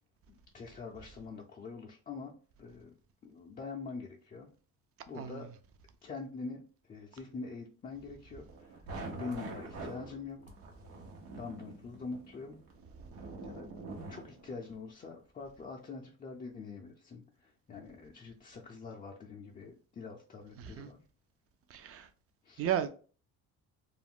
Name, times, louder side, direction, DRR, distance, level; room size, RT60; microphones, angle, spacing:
voice 1, 0.3-2.3 2.6-2.9 3.2-4.5 5.1-5.5 6.0-10.4 11.3-12.6 13.4-13.7 14.1-21.0 22.4-22.7, left 4 dB, 25° left, 0.4 m, -44 dB
sound 1, 8.5-14.7, right 2 dB, 85° right, 0.9 m, -45 dB
voice 2, 21.7-22.1 22.6-22.9, right 10 dB, 40° right, 0.4 m, -33 dB
2.4 x 2.1 x 3.5 m
cardioid pair, 110°, 35 cm